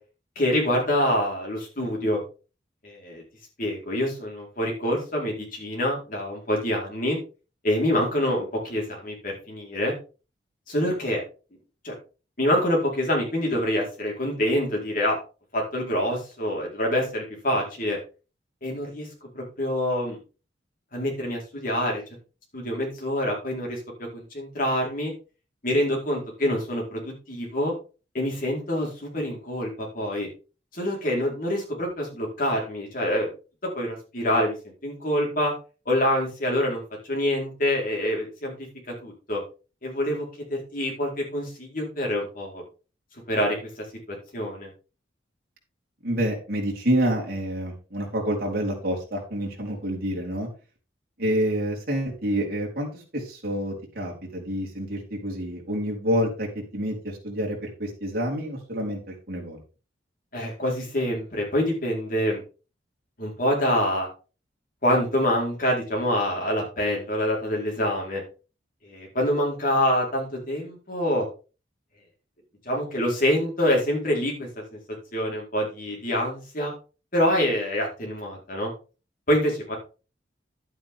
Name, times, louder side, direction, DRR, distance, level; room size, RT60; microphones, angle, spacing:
voice 1, 0.4-2.2 2.8-3.2 3.6-7.2 7.6-9.9 10.7-11.2 11.8-11.9 12.4-15.2 15.5-18.0 18.6-19.1 19.3-20.2 20.9-22.0 22.5-23.8 24.1-25.1 25.6-27.7 28.1-30.3 30.7-33.3 33.7-34.5 34.8-35.5 35.9-36.8 37.1-38.5 39.0-39.4 39.8-42.6 43.3-43.8 44.3-44.7 60.3-62.4 63.2-64.1 64.8-68.2 68.8-71.3 72.7-74.8 75.1-76.7 77.1-78.7 79.3-79.8, left 1 dB, 50° left, -1 dB, 4.4 m, -26 dB
voice 2, 46.0-50.5 51.2-59.6, equal, 55° right, -2 dB, 4.0 m, -28 dB
11.0 x 8.7 x 3.7 m, 0.34 s
head